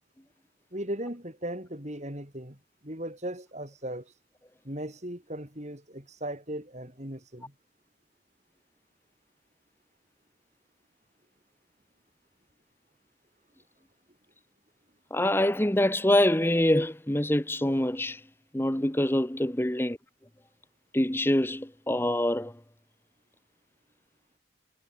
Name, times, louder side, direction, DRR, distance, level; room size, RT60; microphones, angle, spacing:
voice 1, 0.7-2.6 2.8-4.1 4.6-7.5, right 1 dB, 35° right, 4.8 m, -37 dB
voice 2, 15.1-18.2 18.5-20.0 20.9-22.5, left 1 dB, 10° left, 1.0 m, -25 dB
head